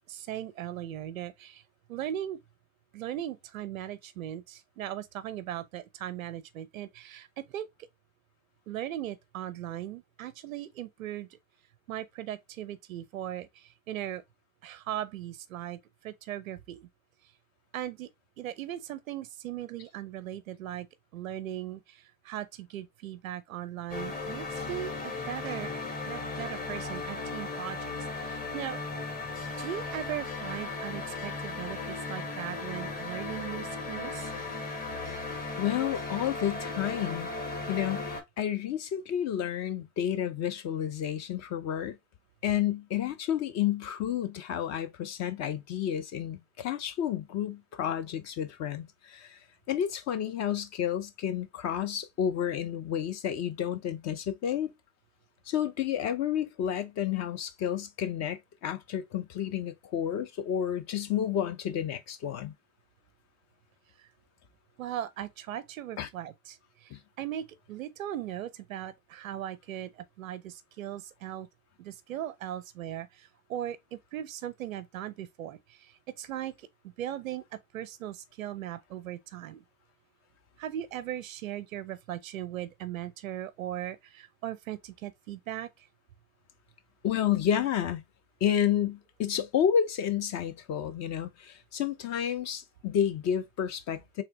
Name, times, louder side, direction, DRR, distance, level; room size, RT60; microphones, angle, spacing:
voice 1, 0.1-1.6 1.9-2.4 2.9-7.7 8.7-11.3 11.9-14.2 14.6-16.9 17.7-18.1 18.4-20.9 21.1-25.7 26.1-28.8 29.6-34.3 64.8-71.5 71.8-76.7 77.0-77.4 77.7-79.6 80.6-85.9, right 12 dB, 85° right, 0.5 m, -38 dB
sound 1, 23.9-38.2, left 3 dB, 20° left, 1.2 m, -36 dB
voice 2, 35.6-37.3 37.7-42.0 42.4-49.4 49.7-54.7 55.5-62.5 66.0-66.1 66.9-67.0 87.0-88.0 88.4-94.2, left 9 dB, 40° left, 0.8 m, -30 dB
3.3 x 2.9 x 3.0 m
hypercardioid pair, 80°, 40 cm